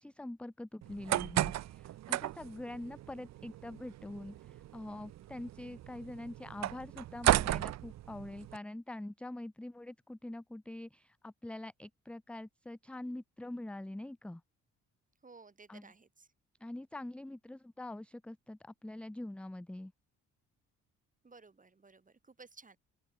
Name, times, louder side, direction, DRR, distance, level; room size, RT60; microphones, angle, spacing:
voice 1, 0.0-14.4 15.7-15.9 16.6-19.9, left 1 dB, 5° left, 0.5 m, -44 dB
sound 1, 0.8-8.6, right 14 dB, 65° right, 0.6 m, -35 dB
voice 2, 15.2-16.3 21.2-22.8, right 4 dB, 25° right, 5.3 m, -56 dB
open air
cardioid pair, 90°, 30 cm